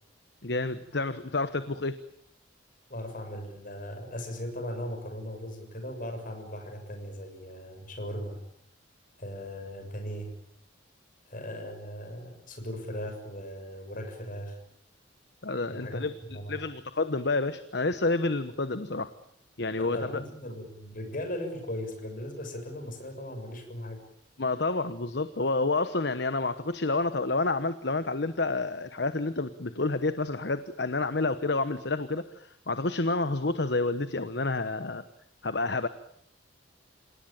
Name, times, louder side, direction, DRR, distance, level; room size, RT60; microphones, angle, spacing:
voice 1, 0.4-1.9 15.4-16.2 16.5-19.1 19.6-20.2 24.4-35.0 35.4-35.9, left 3 dB, 60° left, 12 dB, 1.1 m, -29 dB
voice 2, 2.9-8.4 9.2-10.3 11.3-14.6 15.7-16.0 16.3-16.7 19.8-24.0, equal, 45° left, 5 dB, 6.8 m, -38 dB
27.5 x 18.5 x 8.9 m, 0.71 s
head